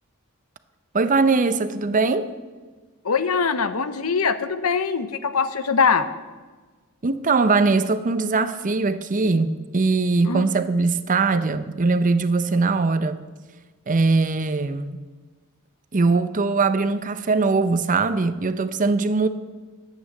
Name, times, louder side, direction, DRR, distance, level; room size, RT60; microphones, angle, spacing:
voice 1, 0.9-2.3 7.0-13.2 13.9-15.0 15.9-19.3, right 3 dB, 40° right, 0.6 m, -21 dB
voice 2, 3.0-6.1 10.2-10.4, left 5 dB, 85° left, 0.8 m, -22 dB
11.0 x 8.5 x 7.3 m
head